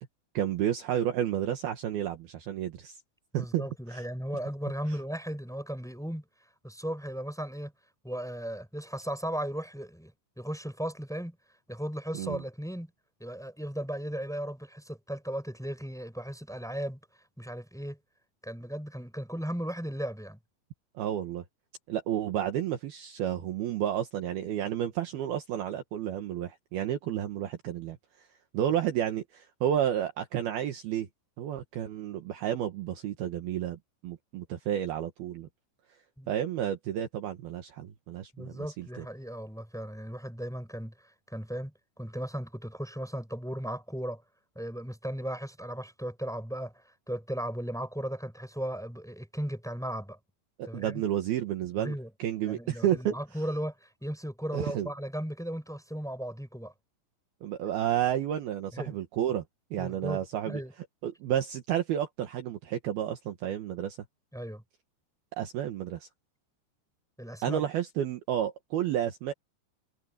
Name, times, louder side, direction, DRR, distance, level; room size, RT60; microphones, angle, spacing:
voice 1, 0.3-3.0 3.3-4.0 12.1-12.4 20.9-21.4 21.9-28.3 28.5-31.1 31.4-35.5 36.3-39.0 50.6-51.9 52.2-53.1 54.5-54.9 57.4-59.4 59.7-60.6 61.0-64.0 65.3-66.1 67.4-69.3, right 10 dB, 65° right, 3.1 m, -31 dB
voice 2, 3.3-6.2 6.6-7.7 8.0-11.4 11.7-12.9 13.2-17.0 17.4-18.0 18.4-20.4 36.2-36.3 38.3-44.2 44.6-50.2 50.7-51.0 51.8-52.1 52.5-56.7 58.7-59.0 59.8-60.7 64.3-64.6 67.2-67.6, equal, ahead, 7.0 m, -36 dB
omnidirectional pair, 5.0 m